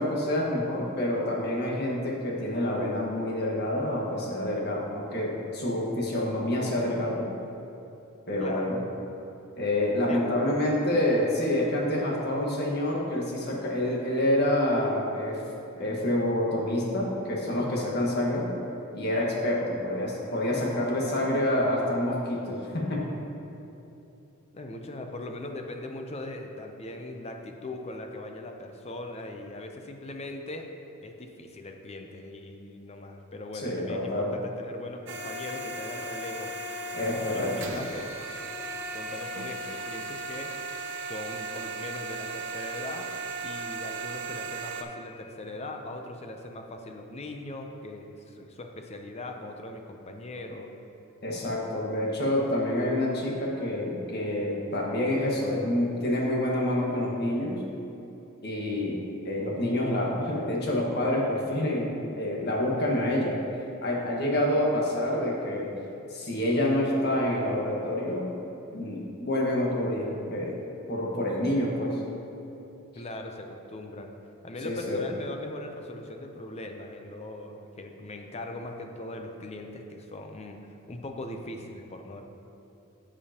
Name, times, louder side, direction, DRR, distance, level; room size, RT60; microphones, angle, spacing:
voice 1, 0.0-7.3 8.3-8.8 9.6-15.4 15.7-18.5 18.9-23.0 33.6-34.4 36.9-37.8 51.2-57.6 58.4-59.0 59.2-63.4 63.8-65.7 66.1-68.3 68.7-70.5 70.9-72.0 74.6-75.0, left 1 dB, 50° left, -3 dB, 1.4 m, -27 dB
voice 2, 8.4-8.8 10.1-10.4 24.5-30.7 31.0-36.5 37.0-38.1 38.9-40.5 41.0-43.1 43.4-50.7 73.0-74.1 74.4-82.2, left 2 dB, 30° left, 4 dB, 0.6 m, -40 dB
sound 1, 35.1-44.8, right 3 dB, 55° right, 0.6 m, -36 dB
13.5 x 5.0 x 2.9 m, 2.9 s
head